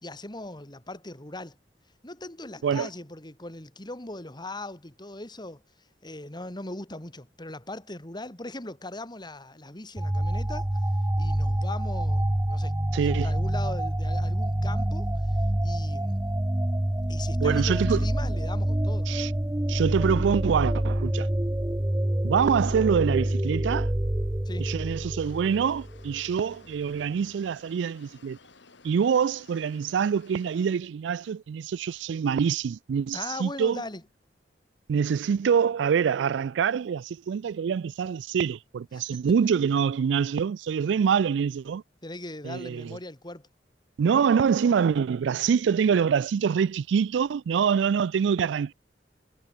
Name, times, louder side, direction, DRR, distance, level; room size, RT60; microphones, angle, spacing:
voice 1, 0.0-1.6 2.0-5.6 6.0-10.8 11.2-16.4 17.1-19.1 24.4-24.7 33.1-34.0 38.9-39.2 42.0-43.5, left 2 dB, 25° left, 3.1 m, -40 dB
sound 1, 10.0-26.3, right 1 dB, 15° right, 0.7 m, -27 dB
voice 2, 12.9-13.3 17.4-18.0 19.1-19.3 19.7-21.3 22.2-23.9 24.6-28.4 28.8-33.8 34.9-41.8 42.4-43.0 44.0-48.7, right 7 dB, 85° right, 0.3 m, -25 dB
sound 2, 25.2-30.8, left 4 dB, 80° left, 2.5 m, -55 dB
head